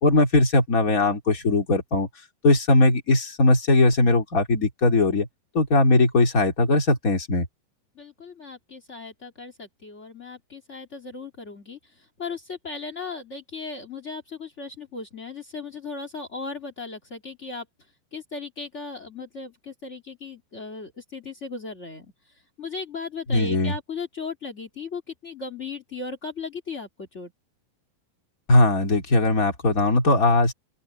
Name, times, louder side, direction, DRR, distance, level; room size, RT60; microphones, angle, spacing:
voice 1, 0.0-2.1 2.4-5.3 5.5-7.5 23.3-23.7 28.5-30.5, left 2 dB, 25° left, 2.6 m, -19 dB
voice 2, 7.9-17.6 18.1-22.1 22.6-27.3, left 4 dB, 45° left, 0.8 m, -37 dB
open air
omnidirectional pair, 5.1 m